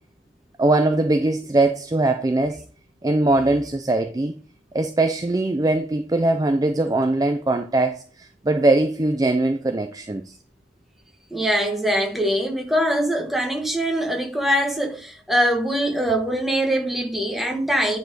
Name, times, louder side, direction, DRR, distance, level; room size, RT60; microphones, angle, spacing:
voice 1, 0.6-2.6 3.0-4.3 4.7-10.3, right 2 dB, 20° right, 0.4 m, -21 dB
voice 2, 11.3-18.0, equal, ahead, 1.3 m, -23 dB
9.6 x 4.2 x 4.1 m
head